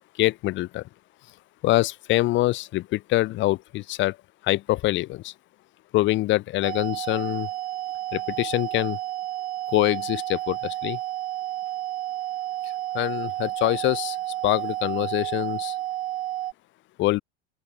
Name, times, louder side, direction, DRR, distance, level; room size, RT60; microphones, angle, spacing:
voice 1, 0.2-0.8 1.6-4.2 4.4-5.3 5.9-7.5 8.1-9.0 9.7-11.0 12.6-14.2 14.4-15.8 17.0-17.2, left 17 dB, 35° left, 0.5 m, -24 dB
sound 1, 6.6-16.5, right 14 dB, 75° right, 2.9 m, -31 dB
open air
hypercardioid pair, 85°, 33 cm